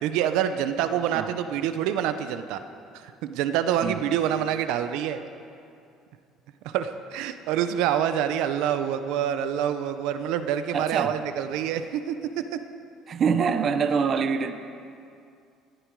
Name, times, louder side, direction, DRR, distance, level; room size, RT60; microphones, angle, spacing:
voice 1, 0.0-2.6 2.9-5.2 6.6-12.6, right 9 dB, 80° right, 10 dB, 0.7 m, -26 dB
voice 2, 10.7-11.1 13.1-14.5, right 6 dB, 35° right, 9 dB, 0.7 m, -25 dB
18.5 x 14.0 x 4.7 m, 2.5 s
cardioid pair, 155°, 0 cm